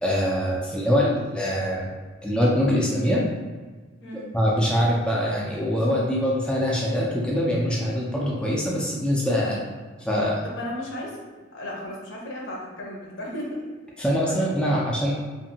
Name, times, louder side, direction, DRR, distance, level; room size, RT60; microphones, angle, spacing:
voice 1, 0.0-2.0 2.2-3.2 4.1-9.6 10.0-10.4 14.0-15.1, equal, 5° left, -5 dB, 0.3 m, -23 dB
voice 2, 10.4-11.2 11.5-13.8 14.3-14.5, left 1 dB, 70° left, -3 dB, 0.7 m, -35 dB
2.7 x 2.5 x 2.7 m, 1.4 s
head